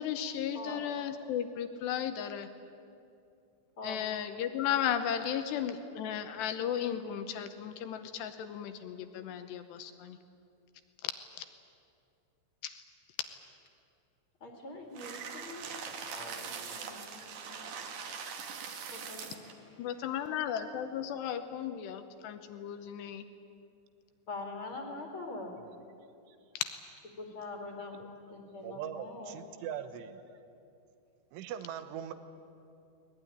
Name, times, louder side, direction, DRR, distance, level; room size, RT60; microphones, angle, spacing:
voice 1, 0.0-2.5 3.8-10.2 11.0-11.4 12.6-12.8 19.8-23.2 26.5-26.7, left 9 dB, 75° left, 9 dB, 2.6 m, -35 dB
voice 2, 14.4-15.7 16.1-17.8 18.8-19.8 20.2-20.3 24.3-25.5 27.2-29.4, left 3 dB, 35° left, 2 dB, 2.3 m, -44 dB
sound 1, 14.9-19.5, right 6 dB, 55° right, 2.8 m, -42 dB
voice 3, 28.6-30.2 31.3-32.1, right 9 dB, 80° right, 10 dB, 3.5 m, -41 dB
21.5 x 20.5 x 9.9 m, 2.6 s
omnidirectional pair, 5.7 m